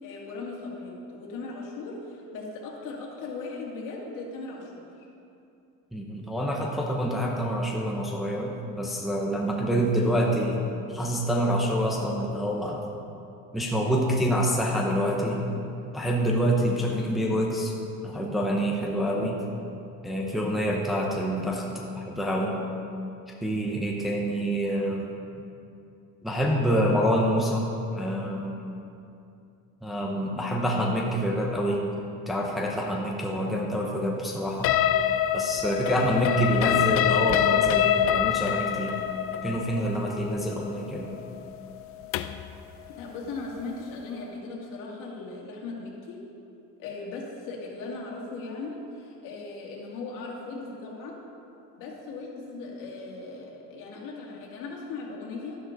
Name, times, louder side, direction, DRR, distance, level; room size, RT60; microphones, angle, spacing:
voice 1, 0.0-5.1 42.9-46.2 46.8-51.2 51.8-55.6, left 3 dB, 65° left, -2 dB, 2.4 m, -38 dB
voice 2, 5.9-10.6 10.9-12.9 13.5-15.5 15.9-17.7 18.0-19.4 20.0-21.7 22.0-22.6 23.4-25.1 26.2-27.7 27.9-28.6 29.8-31.8 32.3-34.8 35.3-39.0 39.4-41.2, equal, ahead, -2 dB, 0.8 m, -27 dB
sound 1, 34.6-42.5, left 10 dB, 45° left, 0.4 m, -25 dB
12.0 x 11.0 x 3.9 m, 2.6 s
cardioid pair, 165°, 34 cm